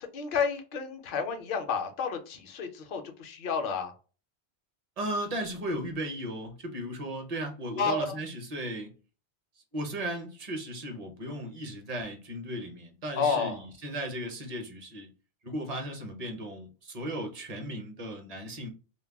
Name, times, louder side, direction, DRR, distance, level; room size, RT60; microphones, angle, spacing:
voice 1, 0.1-3.9 7.8-8.2 13.2-13.7, left 5 dB, 60° left, 0.7 m, -30 dB
voice 2, 5.0-8.9 9.7-15.1 15.4-18.7, right 1 dB, 40° right, 0.6 m, -36 dB
2.3 x 2.1 x 3.3 m
omnidirectional pair, 1.2 m